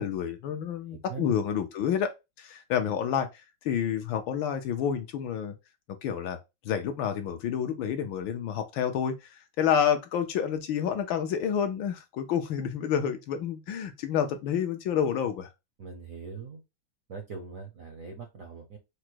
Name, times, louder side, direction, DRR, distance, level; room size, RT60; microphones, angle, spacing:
voice 1, 0.0-2.1 2.4-3.3 3.6-5.5 6.0-6.4 6.6-15.5, left 8 dB, 70° left, 1.3 m, -29 dB
voice 2, 15.8-16.6 17.1-18.8, right 5 dB, 65° right, 0.8 m, -41 dB
4.9 x 2.1 x 4.5 m
omnidirectional pair, 2.4 m